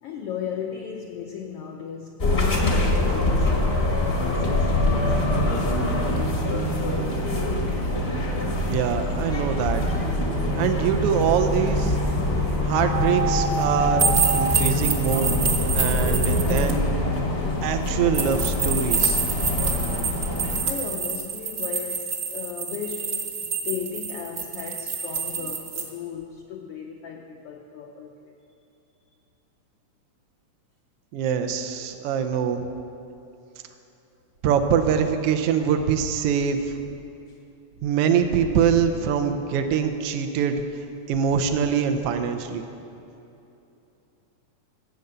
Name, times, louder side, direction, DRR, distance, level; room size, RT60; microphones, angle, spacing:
voice 1, 0.0-5.3 20.2-28.3, left 7 dB, 80° left, 1 dB, 1.3 m, -36 dB
sound 1, 2.2-20.6, left 1 dB, 50° left, 0.7 m, -24 dB
voice 2, 8.7-9.9 10.6-12.0 12.6-14.1 14.3-15.4 15.7-16.9 17.6-19.2 31.1-32.6 34.4-36.7 37.8-40.6 41.1-42.6, right 7 dB, 85° right, 6 dB, 1.3 m, -24 dB
sound 2, 12.9-14.5, right 6 dB, 70° right, 2.1 m, -27 dB
sound 3, 14.0-16.7 18.1-25.8, right 5 dB, 50° right, 1.2 m, -27 dB
13.5 x 8.4 x 6.7 m, 2.9 s
omnidirectional pair, 3.5 m